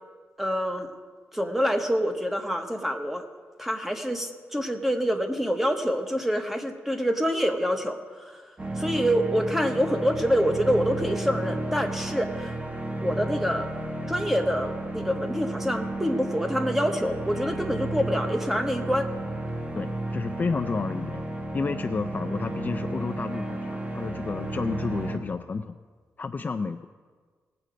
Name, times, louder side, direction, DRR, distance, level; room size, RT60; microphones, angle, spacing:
voice 1, 0.4-0.9 1.3-3.2 3.6-8.3 8.8-12.5 13.0-13.7 14.1-19.1, equal, 5° right, 5 dB, 1.0 m, -26 dB
sound 1, 8.6-25.2, right 2 dB, 25° right, 1.1 m, -33 dB
voice 2, 19.7-21.2 21.5-25.7 26.2-26.8, left 4 dB, 30° left, 9 dB, 0.4 m, -31 dB
18.5 x 7.7 x 5.0 m, 1.5 s
wide cardioid pair, 145°, 5 cm